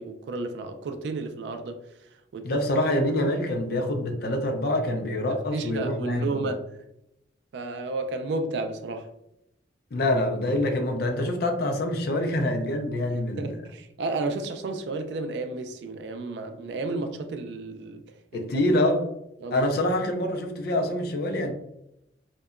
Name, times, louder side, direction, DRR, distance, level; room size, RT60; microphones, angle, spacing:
voice 1, 0.0-2.6 5.3-6.6 7.5-9.1 13.1-18.1 18.3-18.7 19.4-19.7, right 3 dB, 65° right, 0.3 m, -32 dB
voice 2, 2.4-6.5 9.9-13.6 18.3-19.1 19.5-21.5, left 1 dB, 55° left, 0.4 m, -26 dB
2.8 x 2.2 x 2.3 m
head